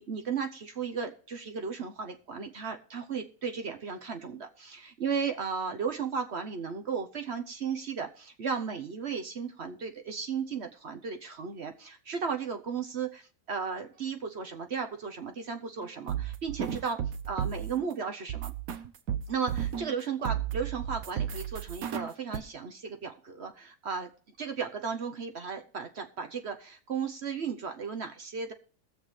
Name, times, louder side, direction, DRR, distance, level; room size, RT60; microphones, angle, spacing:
voice 1, 0.0-17.0 17.3-18.5 19.3-24.1 24.4-28.5, right 6 dB, 50° right, 6 dB, 1.1 m, -35 dB
sound 1, 15.8-17.8 18.3-20.0 20.3-22.4, right 9 dB, 75° right, 1.3 m, -33 dB
21.5 x 7.2 x 3.2 m, 0.44 s
omnidirectional pair, 1.5 m